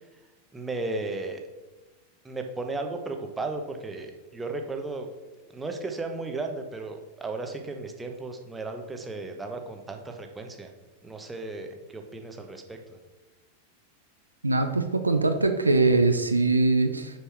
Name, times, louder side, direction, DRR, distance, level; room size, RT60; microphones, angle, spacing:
voice 1, 0.5-1.4 2.2-5.1 5.5-10.7 11.0-13.0, right 3 dB, 10° right, 4 dB, 1.0 m, -35 dB
voice 2, 14.4-17.1, right 3 dB, 80° right, 7 dB, 0.6 m, -22 dB
6.6 x 4.7 x 5.8 m, 1.2 s
figure-of-eight pair, 90°, 0 cm